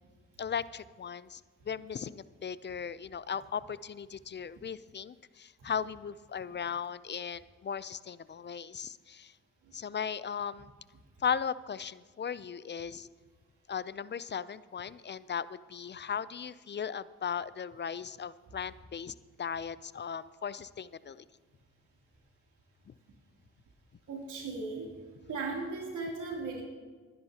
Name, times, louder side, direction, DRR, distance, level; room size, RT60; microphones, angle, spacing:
voice 1, 0.4-1.4 1.7-9.3 9.7-10.7 11.2-13.1 13.7-21.2, left 7 dB, 35° left, 17 dB, 0.5 m, -37 dB
voice 2, 24.1-24.9 25.2-26.6, right 3 dB, 80° right, -2 dB, 3.1 m, -37 dB
23.5 x 10.5 x 2.9 m, 1.5 s
supercardioid pair, 55°, 30 cm